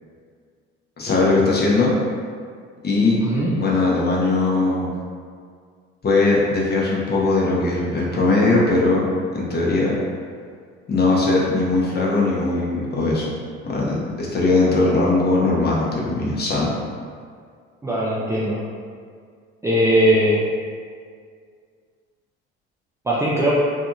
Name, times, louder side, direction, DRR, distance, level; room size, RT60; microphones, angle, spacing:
voice 1, 1.0-1.9 2.8-3.2 3.5-4.9 6.0-9.1 9.3-9.9 10.9-13.3 13.6-16.7, left 3 dB, 30° left, -4 dB, 0.7 m, -19 dB
voice 2, 3.2-3.5 17.8-18.6 19.6-20.5 23.1-23.5, equal, 10° right, -7 dB, 0.3 m, -19 dB
2.6 x 2.4 x 2.5 m, 2.1 s
hypercardioid pair, 60°, 35 cm